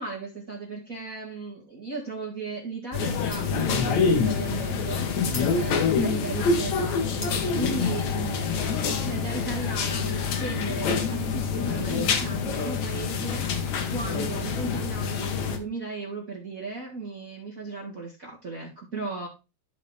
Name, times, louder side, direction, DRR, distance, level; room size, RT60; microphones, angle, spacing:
voice 1, 0.0-13.7 13.9-19.3, right 3 dB, 65° right, -2 dB, 0.8 m, -36 dB
sound 1, 2.9-15.6, left 5 dB, 85° left, 1.6 m, -26 dB
Shatter, 3.3-3.9 4.2-4.3 5.3-6.4 7.2-8.2, left 2 dB, 60° left, 0.8 m, -41 dB
13.5 x 4.5 x 3.3 m, 0.28 s
omnidirectional pair, 5.1 m